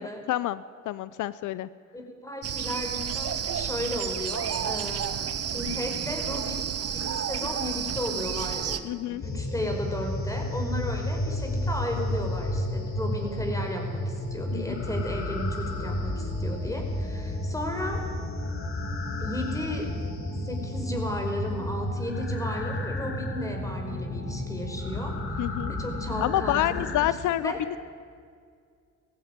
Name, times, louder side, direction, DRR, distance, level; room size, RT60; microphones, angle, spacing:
voice 1, 0.3-1.7 8.8-9.2 14.5-14.7 25.4-25.7 26.2-27.8, left 13 dB, 80° left, 17 dB, 0.6 m, -28 dB
voice 2, 1.9-18.0 19.2-20.0 20.5-27.1 27.4-27.6, left 1 dB, 10° left, 3 dB, 5.2 m, -34 dB
sound 1, 2.4-8.8, right 8 dB, 50° right, 1.3 m, -31 dB
sound 2, 9.2-27.1, left 1 dB, 45° left, 3.6 m, -31 dB
19.5 x 15.5 x 9.5 m, 2.1 s
cardioid pair, 90°, 30 cm